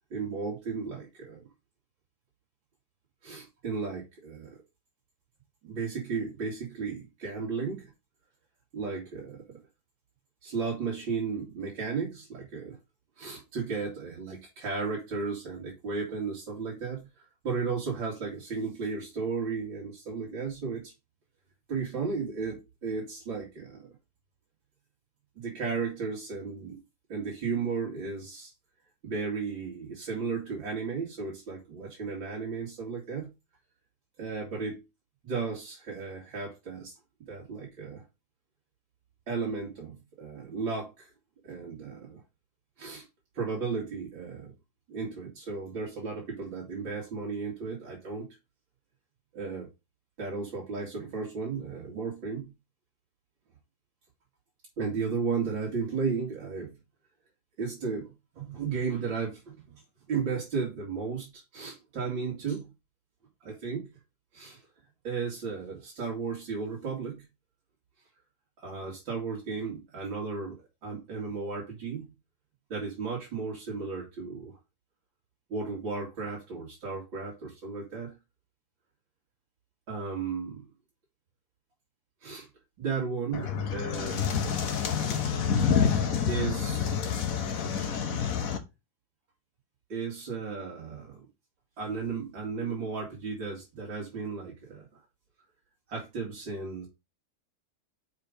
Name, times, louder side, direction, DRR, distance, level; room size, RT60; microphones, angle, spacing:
voice 1, 0.1-1.5 3.2-4.5 5.6-7.9 8.7-9.4 10.4-12.8 13.2-20.9 21.7-23.9 25.4-26.8 27.1-28.5 29.0-33.3 34.2-34.8 35.2-38.0 39.3-41.1 41.4-42.2 42.8-43.0 43.3-44.5 44.9-48.4 49.3-49.7 50.2-52.5 54.8-56.7 57.6-59.7 60.1-62.7 63.4-63.8 64.3-64.6 65.0-67.2 68.6-72.1 72.7-74.6 75.5-78.2 79.9-80.7 82.2-82.5 82.8-84.3 86.3-86.9 89.9-91.2 91.8-94.9 95.9-96.9, right 5 dB, 90° right, 3.0 m, -34 dB
sound 1, 83.3-88.6, left 7 dB, 55° left, 1.3 m, -28 dB
5.5 x 5.1 x 5.2 m
omnidirectional pair, 2.0 m